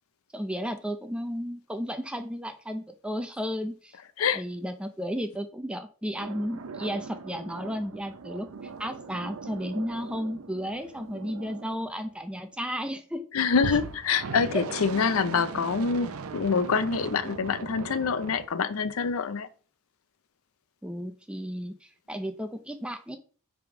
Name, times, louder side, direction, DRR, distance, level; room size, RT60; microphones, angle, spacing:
voice 1, 0.3-4.0 4.3-8.5 8.8-13.2 14.5-14.6 20.8-23.2, equal, 5° right, 0.4 m, -33 dB
sound 1, 6.2-12.5 13.6-18.5, right 4 dB, 85° right, 0.6 m, -40 dB
voice 2, 13.3-19.5, left 5 dB, 80° left, 0.5 m, -26 dB
5.9 x 3.5 x 4.9 m
head